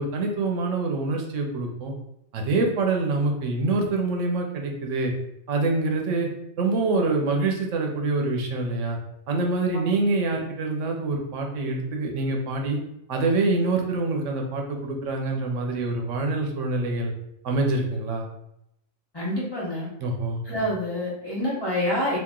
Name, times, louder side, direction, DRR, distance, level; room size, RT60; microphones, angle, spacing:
voice 1, 0.0-1.9 2.3-5.1 5.5-6.3 6.6-9.0 9.3-12.8 13.1-17.1 17.4-18.3 20.0-20.4, right 3 dB, 85° right, 2 dB, 1.0 m, -25 dB
voice 2, 19.1-19.9 20.4-22.2, left 1 dB, 20° left, -7 dB, 0.9 m, -27 dB
2.9 x 2.5 x 3.6 m, 0.79 s
omnidirectional pair, 1.2 m